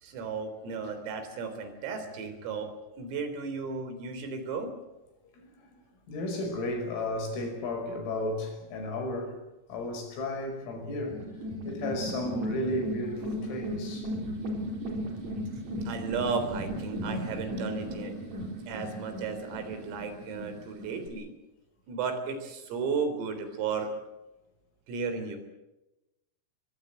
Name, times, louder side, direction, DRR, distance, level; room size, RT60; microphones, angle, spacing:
voice 1, 0.0-2.7 3.0-4.7 15.9-18.2 18.7-21.3 21.9-23.9 24.9-25.4, right 5 dB, 80° right, 6.2 m, -34 dB
voice 2, 6.1-9.4 9.7-11.2 11.6-14.3, left 1 dB, 80° left, 8.2 m, -33 dB
sound 1, 11.1-21.1, equal, 35° right, 4.5 m, -36 dB
24.5 x 21.5 x 8.0 m
omnidirectional pair, 6.0 m